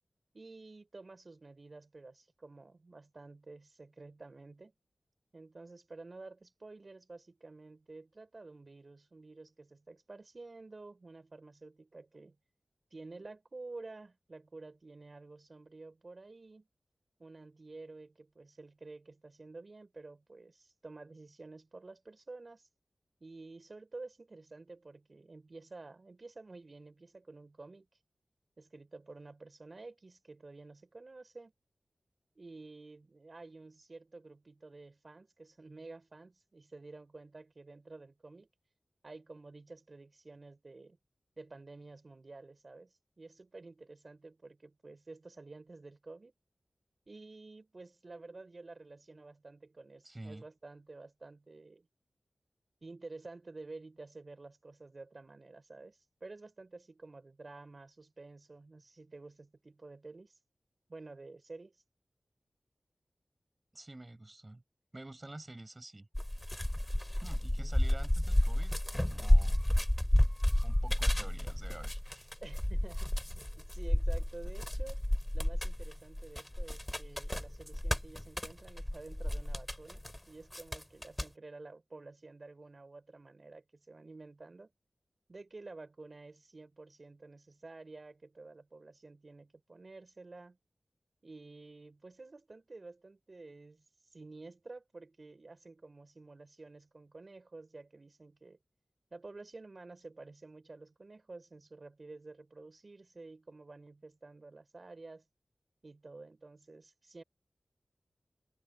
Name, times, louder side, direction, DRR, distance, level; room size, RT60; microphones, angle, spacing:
voice 1, 0.3-4.7 5.3-12.4 12.9-16.7 17.2-22.7 23.2-28.0 28.6-31.5 32.4-38.5 39.0-41.0 41.4-46.3 47.1-51.9 52.8-60.4 60.9-61.8 67.6-67.7 72.4-73.1 73.6-75.0 75.3-84.7 85.3-90.6 91.2-98.6 99.1-105.3 105.8-107.2, right 3 dB, 55° right, 4.6 m, -51 dB
voice 2, 50.0-50.4 63.7-64.6 64.9-66.1 67.2-68.7 69.1-69.6 70.6-72.3, right 2 dB, 35° right, 7.0 m, -48 dB
sound 1, 66.1-80.2 80.5-81.2, left 1 dB, 15° left, 4.1 m, -31 dB
cardioid pair, 50°, 0 cm